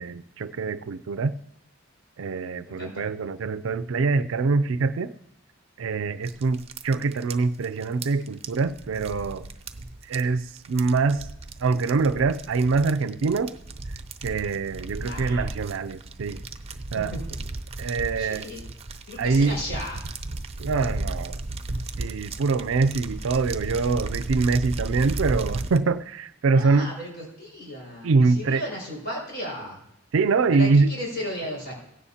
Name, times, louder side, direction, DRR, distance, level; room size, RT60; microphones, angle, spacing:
voice 1, 0.0-1.3 2.2-5.1 5.8-9.5 10.0-11.3 11.6-13.6 14.2-16.4 16.9-17.1 17.8-18.5 19.2-19.6 20.6-21.4 22.0-26.9 28.0-28.6 30.1-31.0, right 4 dB, 80° right, 12 dB, 0.4 m, -24 dB
voice 2, 2.7-3.0 15.0-15.4 17.1-17.2 18.2-18.6 19.1-20.0 26.5-29.8 30.5-31.7, equal, 60° left, -2 dB, 5.5 m, -35 dB
sound 1, 6.2-25.8, right 2 dB, 30° right, 0.7 m, -35 dB
17.0 x 16.0 x 2.8 m, 0.78 s
head